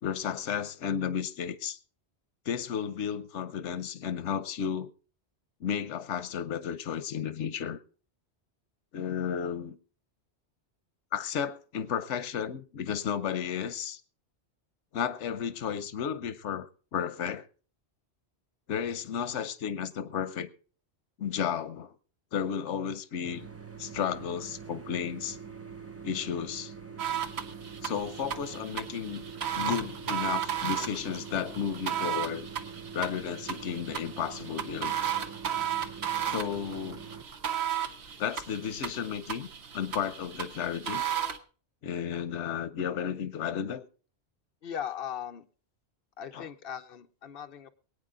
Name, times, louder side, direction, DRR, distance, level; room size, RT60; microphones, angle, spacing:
voice 1, 0.0-1.8 2.5-4.9 5.6-7.8 8.9-9.8 11.1-14.0 14.9-17.5 18.7-20.5 21.2-21.9 22.3-23.5 23.8-25.4 26.0-26.7 27.8-29.2 29.6-32.5 32.9-34.9 36.3-37.0 38.2-39.5 39.7-41.0 41.8-43.8 46.3-46.5, left 8 dB, 90° left, 1.1 m, -33 dB
sound 1, 23.2-37.2, right 6 dB, 15° right, 0.6 m, -44 dB
sound 2, 27.0-41.4, right 9 dB, 70° right, 1.3 m, -35 dB
voice 2, 44.6-45.4 46.2-47.7, left 9 dB, 60° left, 1.0 m, -38 dB
23.0 x 8.9 x 3.8 m
omnidirectional pair, 1.2 m